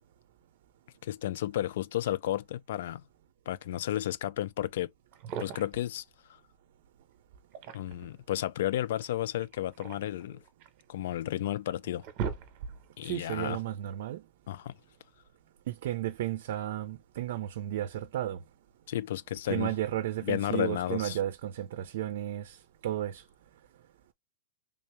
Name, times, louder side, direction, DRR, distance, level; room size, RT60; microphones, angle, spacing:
voice 1, 1.0-3.0 3.5-4.9 5.4-6.0 7.7-10.4 10.9-12.0 13.0-13.6 14.5-14.7 18.9-19.7 20.2-21.2, left 13 dB, 55° left, 0.4 m, -32 dB
sound 1, 4.7-4.8 5.1-5.9 7.3-8.1 9.4-10.8 11.4-11.5 11.8-13.0, right 7 dB, 30° right, 1.1 m, -39 dB
voice 2, 13.0-14.2 15.7-18.4 19.5-22.6 22.8-23.2, right 13 dB, 50° right, 0.6 m, -33 dB
3.4 x 2.8 x 3.2 m
supercardioid pair, 175°, 0 cm